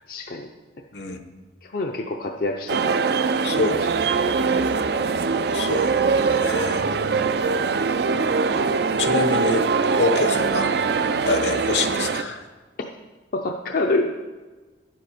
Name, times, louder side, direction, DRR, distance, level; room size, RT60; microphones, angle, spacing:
voice 1, 0.1-0.5 1.6-3.0 3.6-3.9 13.3-14.1, left 2 dB, 50° left, 2 dB, 0.5 m, -26 dB
sound 1, 2.7-12.2, right 4 dB, 60° right, 0.4 m, -22 dB
voice 2, 3.4-3.8 5.5-6.8 8.5-9.6 10.0-10.7 11.2-12.4, left 3 dB, 70° left, 7 dB, 0.9 m, -26 dB
10.0 x 7.8 x 5.0 m, 1.3 s
head